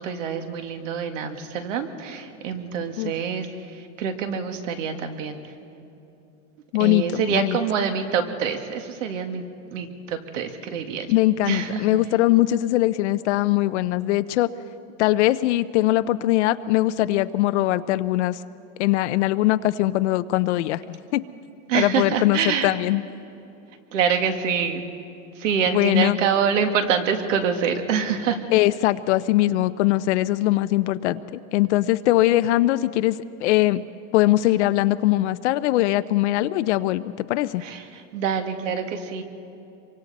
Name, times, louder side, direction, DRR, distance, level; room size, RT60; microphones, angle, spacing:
voice 1, 0.0-5.4 6.8-9.4 9.7-11.1 11.4-12.0 21.7-22.7 23.9-24.8 25.4-28.4 37.6-39.2, right 7 dB, 80° right, 6 dB, 2.0 m, -26 dB
voice 2, 6.7-7.6 11.1-14.5 15.0-18.4 18.8-21.2 21.7-23.0 25.7-26.2 28.5-33.8 34.1-37.6, left 16 dB, 65° left, 13 dB, 0.6 m, -21 dB
26.5 x 24.0 x 4.1 m, 2.8 s
supercardioid pair, 170°, 38 cm